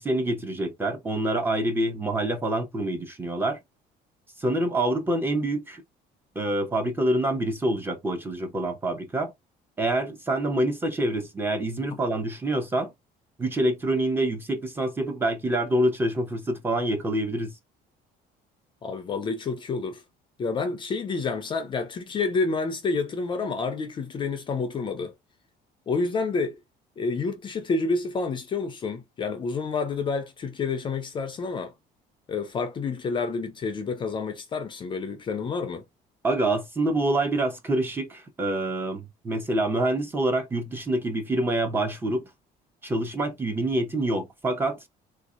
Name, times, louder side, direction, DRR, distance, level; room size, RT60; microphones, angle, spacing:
voice 1, 0.0-3.6 4.4-5.8 6.4-9.3 9.8-12.9 13.4-17.5 36.2-42.2 42.8-44.8, right 1 dB, 15° right, 0.6 m, -26 dB
voice 2, 18.8-20.0 20.4-25.1 25.9-26.6 27.0-31.7 32.3-35.8, left 4 dB, 30° left, 0.5 m, -29 dB
3.5 x 2.7 x 2.4 m
cardioid pair, 160°, 17 cm